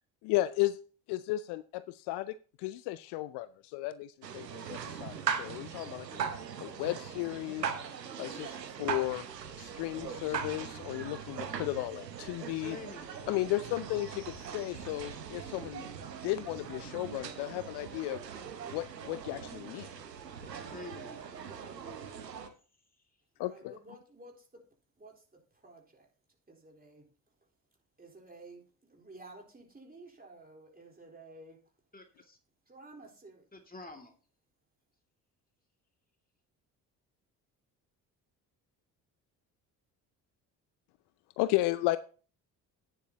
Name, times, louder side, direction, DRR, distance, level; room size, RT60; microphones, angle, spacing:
voice 1, 0.2-0.8 1.1-6.2 6.6-7.7 8.2-9.2 9.6-12.8 13.3-15.9 16.2-18.2 18.7-19.9 23.4-23.7 41.4-42.0, left 16 dB, 55° left, 15 dB, 0.6 m, -34 dB
sound 1, 4.2-22.5, right 7 dB, 85° right, 1.0 m, -40 dB
voice 2, 12.5-13.0 20.4-21.7 31.9-32.4 33.5-34.1, left 2 dB, 20° left, 3 dB, 2.3 m, -48 dB
voice 3, 23.4-24.6 25.0-26.1 26.5-27.1 28.0-31.6 32.7-33.5, right 2 dB, 20° right, 0 dB, 4.0 m, -53 dB
11.0 x 9.8 x 2.9 m, 0.39 s
figure-of-eight pair, 50°, 48 cm